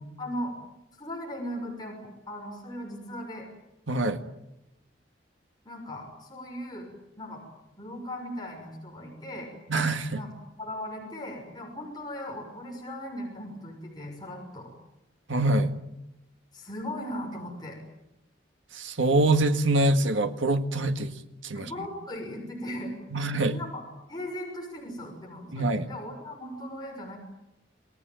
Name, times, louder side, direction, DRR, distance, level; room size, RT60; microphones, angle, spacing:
voice 1, 0.2-0.5 1.0-3.5 5.6-7.4 7.8-9.5 10.1-10.3 10.6-14.7 16.5-17.8 21.5-22.9 23.4-23.8 24.1-27.2, left 1 dB, 20° left, -1 dB, 6.5 m, -38 dB
voice 2, 3.9-4.2 9.7-10.2 15.3-15.7 18.7-21.1 21.4-21.7 23.1-23.6 25.5-25.9, right 2 dB, 80° right, 8 dB, 1.9 m, -24 dB
28.5 x 19.5 x 9.1 m, 0.92 s
head